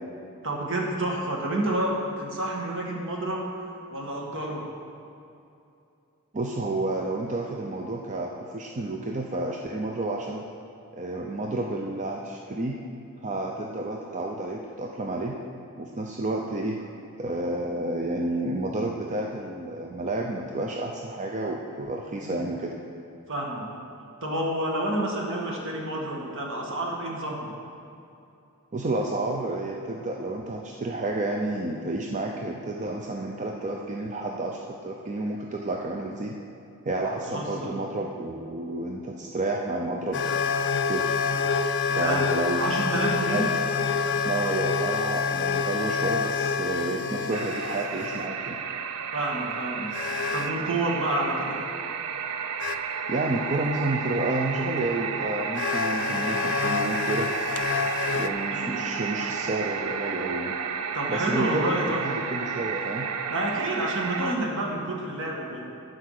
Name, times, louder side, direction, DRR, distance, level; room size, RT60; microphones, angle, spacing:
voice 1, 0.4-3.4 3.9-4.7 22.2-22.5 23.3-23.8 24.2-27.5 37.3-37.7 41.9-43.5 46.9-47.2 49.1-51.6 58.5-58.8 60.9-62.1 63.3-65.7, right 1 dB, 60° right, -1 dB, 1.6 m, -29 dB
voice 2, 6.3-10.4 10.9-12.8 13.2-15.4 15.8-16.8 17.2-22.7 28.7-36.3 36.8-40.2 40.9-41.1 42.0-42.7 43.1-43.5 44.2-48.6 53.1-57.3 58.1-60.5 61.1-63.1, right 2 dB, 35° right, 0 dB, 0.6 m, -30 dB
sound 1, 40.1-48.3 49.9-50.6 52.6-52.8 54.8-54.9 55.5-58.3, left 5 dB, 55° left, 0.4 m, -27 dB
sound 2, 47.3-64.3, right 6 dB, 85° right, 0.5 m, -32 dB
12.5 x 4.9 x 6.5 m, 2.6 s
head